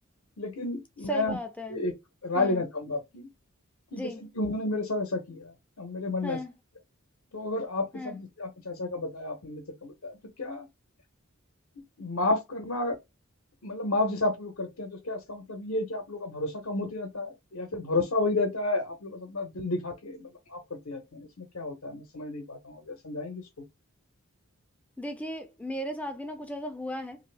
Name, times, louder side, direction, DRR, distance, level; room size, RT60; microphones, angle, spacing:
voice 1, 0.4-1.4 1.7-1.9 2.2-3.3 3.9-6.4 7.3-10.7 12.0-13.0 13.6-23.4, left 2 dB, 70° left, 0.8 m, -31 dB
voice 2, 1.1-1.8 2.3-2.6 3.9-4.2 6.2-6.5 7.9-8.2 25.0-27.2, equal, 5° left, 0.4 m, -36 dB
2.7 x 2.5 x 3.2 m
head